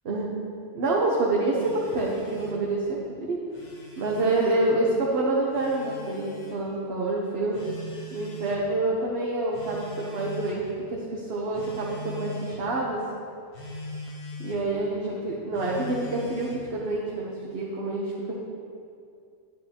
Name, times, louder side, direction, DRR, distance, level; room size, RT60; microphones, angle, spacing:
voice 1, 0.7-3.4 4.0-7.6 8.1-13.0 14.4-18.3, right 2 dB, 60° right, -4 dB, 1.1 m, -27 dB
Telephone, 1.5-2.6 3.4-4.6 5.5-6.6 7.5-8.6 9.5-10.7 11.5-12.6 13.5-14.6 15.5-16.7, left 1 dB, 50° left, 1.3 m, -40 dB
9.4 x 9.1 x 2.9 m, 2.5 s
omnidirectional pair, 1.2 m